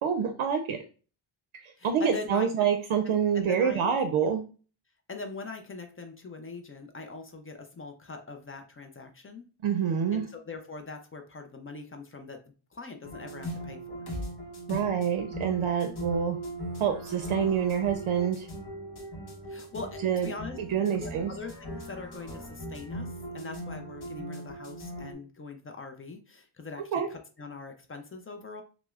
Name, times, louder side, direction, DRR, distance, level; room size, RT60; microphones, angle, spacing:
voice 1, 0.0-0.8 1.6-4.4 9.6-10.3 14.7-16.4 16.8-18.5 20.0-20.3 20.6-21.3 26.9-27.1, right 7 dB, 70° right, 6 dB, 0.5 m, -27 dB
voice 2, 1.8-2.6 3.0-3.9 4.2-4.3 5.1-9.4 10.1-12.4 12.7-14.0 19.5-20.6 20.9-28.6, left 3 dB, 30° left, 4 dB, 0.3 m, -42 dB
sound 1, 13.0-25.1, right 1 dB, 50° left, 0.9 m, -39 dB
5.9 x 2.0 x 2.3 m, 0.37 s
wide cardioid pair, 165°, 50 cm